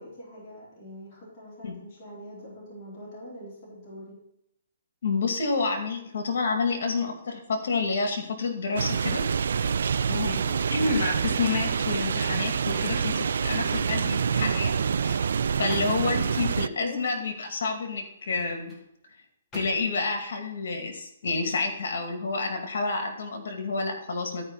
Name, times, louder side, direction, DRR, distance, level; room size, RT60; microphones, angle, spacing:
voice 1, 0.0-4.2 10.4-11.3 16.7-17.1, equal, 30° left, -8 dB, 4.0 m, -43 dB
voice 2, 5.0-9.2 10.1-10.4 10.7-15.2 15.6-18.7 19.5-24.4, left 4 dB, 65° left, 4 dB, 2.2 m, -29 dB
sound 1, 8.8-16.7, right 6 dB, 70° right, 0.3 m, -26 dB
sound 2, 12.7-13.9 14.6-16.3 18.1-18.9 19.5-20.1 20.6-20.8, equal, 10° left, 2.1 m, -47 dB
12.5 x 5.3 x 4.0 m, 0.78 s
hypercardioid pair, 150°, 0 cm